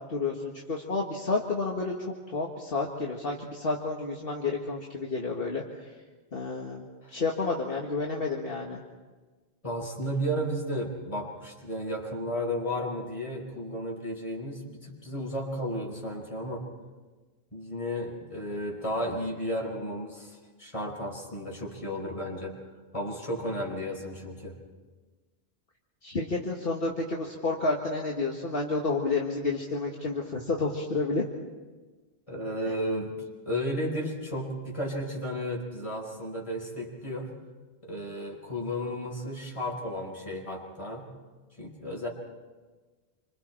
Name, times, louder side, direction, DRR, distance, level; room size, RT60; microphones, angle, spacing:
voice 1, 0.1-5.6 6.3-6.8 7.1-8.8 26.0-31.3, left 3 dB, 60° left, -1 dB, 1.9 m, -30 dB
voice 2, 9.6-16.7 17.5-22.6 22.9-24.6 32.3-33.1 33.4-37.3 37.8-41.1 41.6-42.1, equal, 30° left, 0 dB, 4.8 m, -33 dB
28.0 x 25.5 x 4.5 m, 1.3 s
omnidirectional pair, 1.1 m